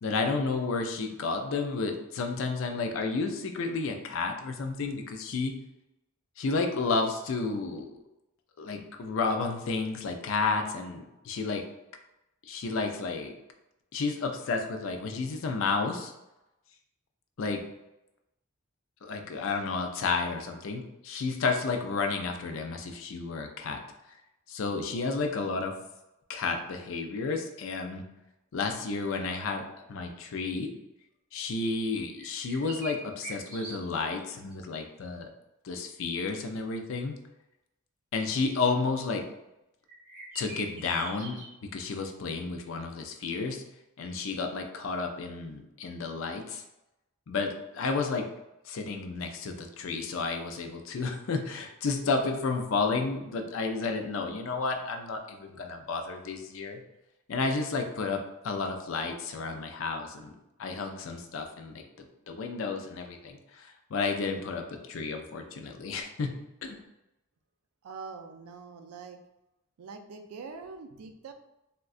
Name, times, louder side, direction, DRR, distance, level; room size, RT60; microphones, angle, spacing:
voice 1, 0.0-5.6 6.4-8.0 8.6-11.6 12.4-13.3 13.9-16.1 17.4-17.6 19.0-23.8 24.1-24.2 24.5-25.7 26.3-28.0 28.5-30.7 31.3-35.3 35.6-37.1 38.1-39.2 40.3-43.6 44.0-46.6 47.3-48.3 48.6-56.8 57.3-60.3 60.6-61.8 62.3-66.3 66.6-66.8, left 4 dB, 65° left, 4 dB, 0.4 m, -31 dB
sound 1, 32.2-34.2 34.5-34.6 39.9-41.5, right 3 dB, 35° right, 0.8 m, -43 dB
voice 2, 67.8-69.2 69.8-71.3, right 4 dB, 85° right, 7 dB, 0.4 m, -44 dB
3.6 x 2.2 x 2.4 m, 0.91 s
head